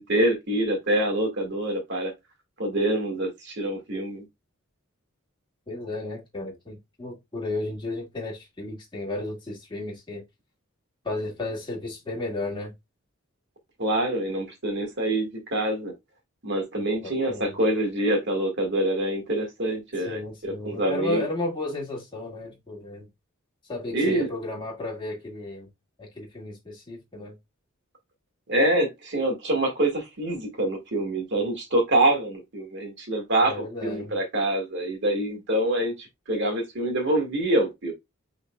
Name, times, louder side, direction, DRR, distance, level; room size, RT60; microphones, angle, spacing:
voice 1, 0.0-2.1 2.6-4.3 13.8-15.9 16.4-21.3 23.9-24.3 28.5-37.9, right 1 dB, 55° right, 1.7 m, -25 dB
voice 2, 5.7-10.2 11.0-12.7 16.8-17.5 20.0-23.1 23.7-25.7 26.0-27.3 33.4-34.1, left 2 dB, 25° left, 2.0 m, -33 dB
5.7 x 3.8 x 2.2 m
head